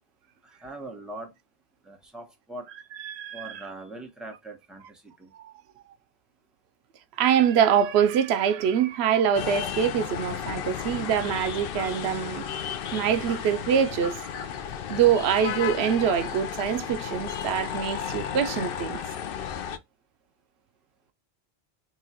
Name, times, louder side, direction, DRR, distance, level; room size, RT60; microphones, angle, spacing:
voice 1, 0.4-1.3 1.8-2.7 3.3-5.3, right 2 dB, ahead, 0.9 m, -41 dB
voice 2, 3.0-3.4 5.4-5.5 7.2-12.5 12.9-14.2 14.9-19.0, right 8 dB, 85° right, 0.8 m, -24 dB
sound 1, 7.5-7.7 8.0-8.1 8.4-8.5 9.4-9.7 11.8-16.6, left 5 dB, 85° left, 1.2 m, -45 dB
sound 2, 9.3-19.8, left 8 dB, 65° left, 0.7 m, -34 dB
5.7 x 2.3 x 2.8 m
omnidirectional pair, 1.0 m